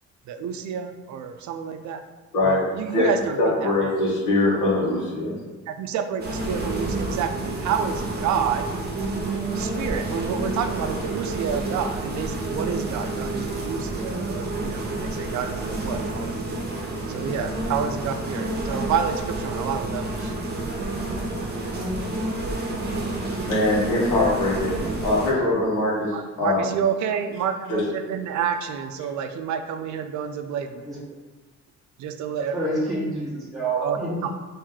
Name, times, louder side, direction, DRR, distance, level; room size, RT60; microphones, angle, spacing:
voice 1, 0.3-2.0 2.4-3.7 5.7-8.7 9.5-16.3 17.1-20.3 26.1-30.8 32.0-32.6 33.8-34.3, right 7 dB, 70° right, 8 dB, 0.4 m, -29 dB
voice 2, 3.4-5.3 23.4-26.7 27.7-27.8, left 2 dB, 90° left, -6 dB, 1.1 m, -22 dB
sound 1, 6.2-25.3, right 2 dB, 35° right, 0.8 m, -29 dB
voice 3, 32.5-34.2, right 2 dB, ahead, -8 dB, 0.9 m, -27 dB
3.0 x 2.7 x 3.7 m, 1.3 s
cardioid pair, 90°, 30 cm